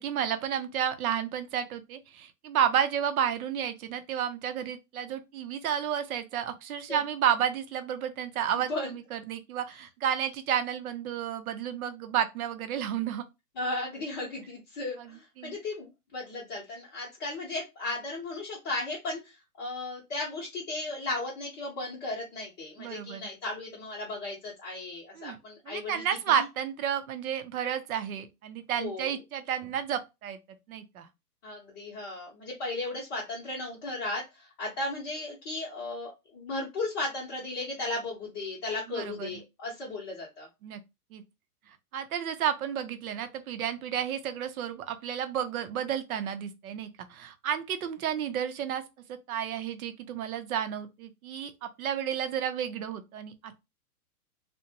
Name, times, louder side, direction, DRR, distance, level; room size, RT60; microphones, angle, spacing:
voice 1, 0.0-13.2 15.0-15.1 15.4-15.6 22.8-23.3 25.2-25.4 25.7-30.4 30.7-31.1 38.9-39.4 40.6-40.8 41.1-41.2 41.9-48.8 49.1-53.5, right 9 dB, 65° right, 0.6 m, -31 dB
voice 2, 8.5-8.9 13.5-26.5 28.8-29.1 31.4-40.5, left 2 dB, 20° left, 0.7 m, -35 dB
2.5 x 2.1 x 2.7 m
hypercardioid pair, 150°, 48 cm